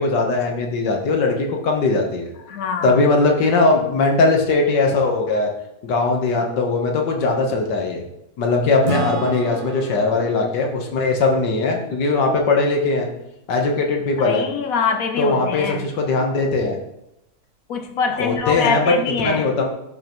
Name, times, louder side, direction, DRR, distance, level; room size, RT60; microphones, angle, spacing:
voice 1, 0.0-2.3 2.8-5.5 5.8-8.0 8.4-13.1 13.5-14.4 15.2-16.8 18.2-18.8 19.2-19.7, left 3 dB, 80° left, 2 dB, 1.8 m, -20 dB
voice 2, 2.5-3.0 14.2-15.9 17.7-19.5, left 5 dB, 65° left, 6 dB, 1.0 m, -24 dB
Acoustic guitar / Strum, 8.8-12.4, right 3 dB, 75° right, 0.4 m, -32 dB
11.5 x 5.5 x 3.0 m, 0.86 s
omnidirectional pair, 1.9 m